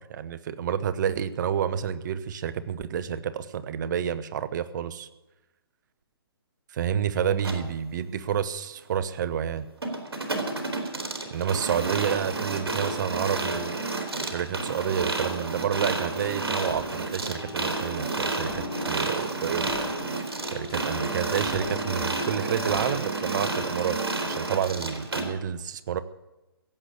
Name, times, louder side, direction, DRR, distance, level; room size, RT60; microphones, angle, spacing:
voice 1, 0.1-5.1 6.7-9.7 11.3-13.8 14.2-19.7 20.5-24.0 24.2-26.0, right 8 dB, 50° right, 14 dB, 0.9 m, -29 dB
sound 1, 7.4-7.6 9.8-25.2, right 2 dB, 80° right, 3.2 m, -30 dB
sound 2, 16.2-22.8, left 5 dB, 70° left, 3.3 m, -43 dB
16.5 x 8.1 x 8.2 m, 1.0 s
figure-of-eight pair, 135°, 13 cm